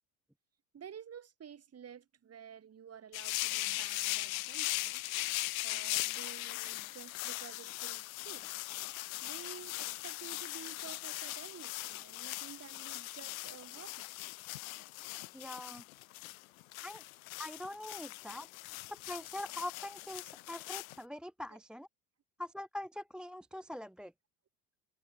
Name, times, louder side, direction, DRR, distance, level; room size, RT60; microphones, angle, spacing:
voice 1, 0.7-5.0 5.6-8.5 9.2-14.1 21.5-21.6, right 8 dB, 30° right, 4.7 m, -52 dB
sound 1, 3.1-21.0, left 20 dB, 65° left, 0.5 m, -39 dB
voice 2, 15.3-15.8 16.8-17.0 17.4-21.9 22.4-24.1, left 1 dB, ahead, 0.8 m, -43 dB
figure-of-eight pair, 65°, 46 cm